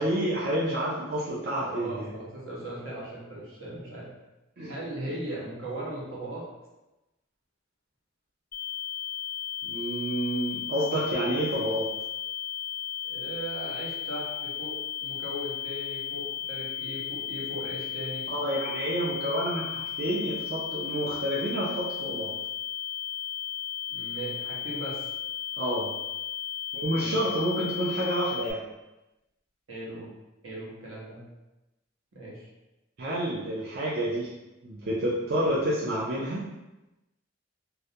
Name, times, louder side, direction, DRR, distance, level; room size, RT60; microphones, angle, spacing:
voice 1, 0.0-2.1 4.6-4.7 9.6-11.9 18.3-22.3 25.6-25.9 26.7-28.6 33.0-34.3 34.6-36.5, right 1 dB, 50° right, -7 dB, 0.4 m, -29 dB
voice 2, 1.5-4.1 4.7-6.4 13.0-18.3 23.9-25.1 26.9-27.2 29.7-30.1 30.4-31.2 32.1-32.5, right 1 dB, 75° right, -6 dB, 0.8 m, -38 dB
sound 1, 8.5-28.5, left 10 dB, 45° left, 0.4 m, -35 dB
2.3 x 2.1 x 2.7 m, 1.0 s
head